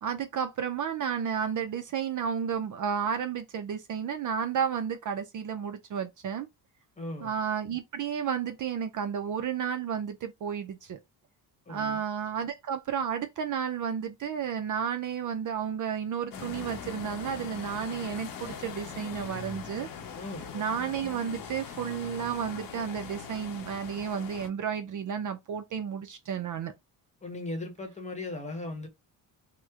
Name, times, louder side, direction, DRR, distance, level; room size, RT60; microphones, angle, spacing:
voice 1, 0.0-6.5 7.2-11.0 11.7-19.9 20.5-26.7, right 7 dB, 45° right, 0.5 m, -32 dB
voice 2, 7.0-7.4 11.7-12.0 20.1-20.6 27.2-28.9, left 2 dB, 15° left, 0.9 m, -38 dB
sound 1, 16.3-24.5, left 6 dB, 55° left, 0.8 m, -41 dB
3.0 x 2.1 x 3.5 m
cardioid pair, 115°, 42 cm